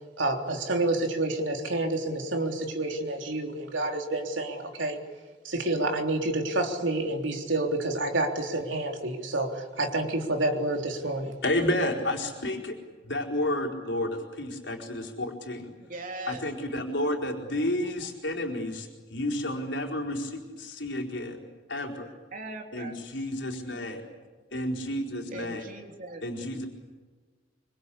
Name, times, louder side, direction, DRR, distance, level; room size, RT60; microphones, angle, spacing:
voice 1, 0.2-5.0 5.4-11.4, right 2 dB, 85° right, 3 dB, 3.6 m, -29 dB
voice 2, 11.4-12.8 13.1-15.7 16.3-22.1 22.7-24.1 24.5-25.6 26.2-26.7, left 1 dB, 70° left, 0 dB, 4.4 m, -31 dB
voice 3, 15.8-16.5 22.3-22.9 25.3-26.6, right 2 dB, 45° right, 3 dB, 3.1 m, -40 dB
25.0 x 25.0 x 8.6 m, 1.4 s
head